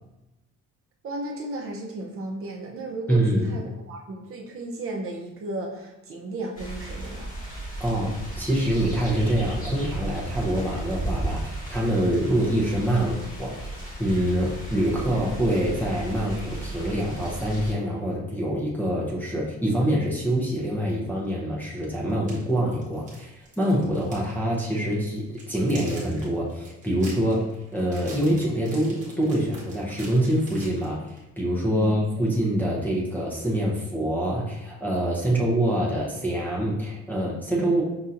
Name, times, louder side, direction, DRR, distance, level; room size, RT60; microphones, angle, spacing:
voice 1, 1.0-7.4 31.8-32.0, right 2 dB, 45° right, -1 dB, 0.6 m, -34 dB
voice 2, 3.1-3.6 7.8-31.0 31.4-37.8, right 1 dB, 5° left, -6 dB, 0.6 m, -25 dB
sound 1, 6.5-17.7, right 1 dB, 25° left, 1.2 m, -35 dB
sound 2, 21.2-21.3 22.1-24.3 24.6-24.8 25.2-31.2, right 2 dB, 25° right, 1.1 m, -45 dB
5.5 x 2.7 x 2.5 m, 0.97 s
cardioid pair, 165°, 31 cm